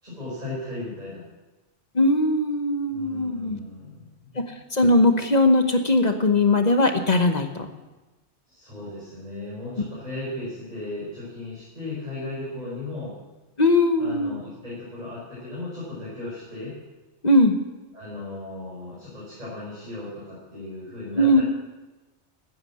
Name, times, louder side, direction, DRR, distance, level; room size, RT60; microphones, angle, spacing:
voice 1, 0.0-1.2 2.9-4.4 8.5-13.1 14.0-16.8 17.9-21.4, left 2 dB, 35° right, -9 dB, 5.7 m, -36 dB
voice 2, 1.9-3.6 4.3-4.4 4.7-7.7 13.6-14.4 17.2-17.6 21.1-21.4, left 2 dB, 40° left, 6 dB, 1.1 m, -20 dB
14.0 x 9.2 x 7.5 m, 1.1 s
omnidirectional pair, 1.2 m